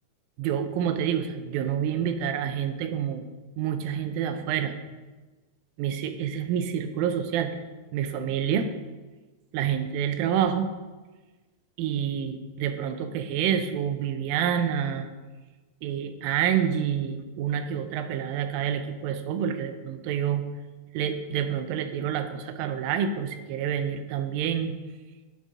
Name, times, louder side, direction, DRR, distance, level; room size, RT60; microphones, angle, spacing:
voice 1, 0.4-3.3 3.6-4.8 5.8-7.6 7.9-8.7 9.5-10.7 11.8-15.1 15.8-20.5 20.9-24.8, right 8 dB, 85° right, 8 dB, 2.3 m, -28 dB
11.0 x 4.1 x 3.6 m, 1.3 s
omnidirectional pair, 4.2 m